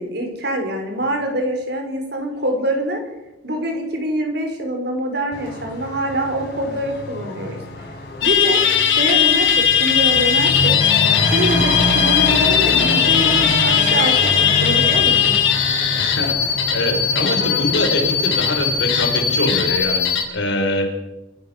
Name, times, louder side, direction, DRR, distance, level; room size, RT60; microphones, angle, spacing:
voice 1, 0.0-3.0 3.4-7.6 8.2-8.6 8.9-10.8 11.3-15.4, right 1 dB, 60° right, 4 dB, 5.4 m, -24 dB
Truck / Accelerating revving vroom, 5.3-19.7, left 1 dB, 55° left, 6.0 m, -27 dB
sound 1, 8.2-20.2, left 8 dB, 90° left, 5.9 m, -18 dB
voice 2, 16.0-20.9, left 1 dB, 70° left, 3 dB, 5.6 m, -24 dB
28.0 x 14.5 x 6.8 m, 0.96 s
head